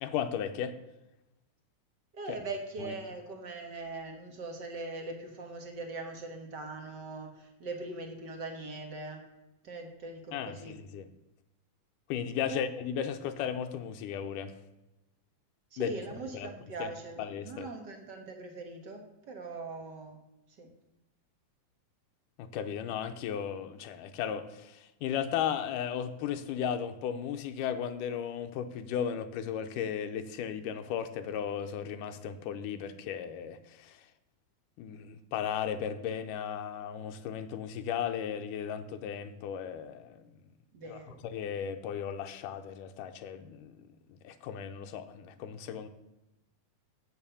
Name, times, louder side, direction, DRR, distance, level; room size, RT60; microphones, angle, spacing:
voice 1, 0.0-0.7 10.3-11.1 12.1-14.5 15.8-15.9 16.3-16.5 16.8-16.9 17.2-17.7 22.4-34.0 34.8-40.2 40.9-41.0 41.3-43.7 44.2-45.9, left 8 dB, 90° left, 8 dB, 2.3 m, -35 dB
voice 2, 2.1-9.3 9.6-10.8 12.5-12.7 15.7-20.2 20.5-20.7 40.7-41.2, right 3 dB, 55° right, 4 dB, 1.2 m, -41 dB
8.1 x 7.2 x 6.9 m, 0.99 s
omnidirectional pair, 3.7 m